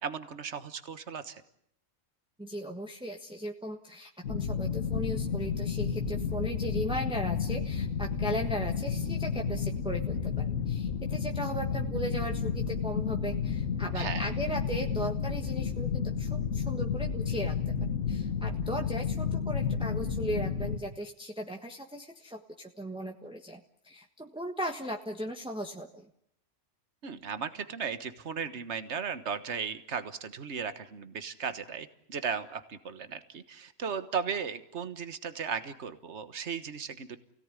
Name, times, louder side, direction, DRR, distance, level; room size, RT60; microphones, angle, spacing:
voice 1, 0.0-1.4 13.9-14.3 27.0-37.2, right 6 dB, 65° right, 11 dB, 1.7 m, -36 dB
voice 2, 2.4-26.1, right 1 dB, 5° right, 3 dB, 1.4 m, -37 dB
sound 1, 4.2-20.8, left 6 dB, 90° left, 1.9 m, -31 dB
28.0 x 18.0 x 9.8 m, 0.73 s
omnidirectional pair, 1.3 m